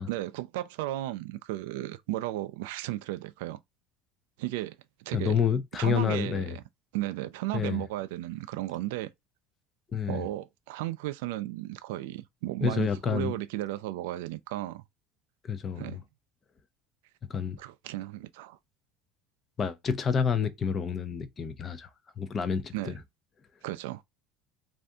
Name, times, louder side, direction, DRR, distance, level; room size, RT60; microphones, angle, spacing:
voice 1, 0.1-3.6 4.4-5.3 5.8-6.6 6.9-9.1 10.1-14.8 15.8-16.0 17.6-18.6 22.7-23.0 23.6-24.0, right 16 dB, 85° right, 0.3 m, -34 dB
voice 2, 5.1-6.6 7.5-7.8 9.9-10.3 12.6-13.3 15.5-16.0 17.3-17.6 19.6-21.9 22.2-22.9, left 7 dB, 30° left, 0.6 m, -29 dB
2.6 x 2.5 x 3.4 m
supercardioid pair, 115°, 0 cm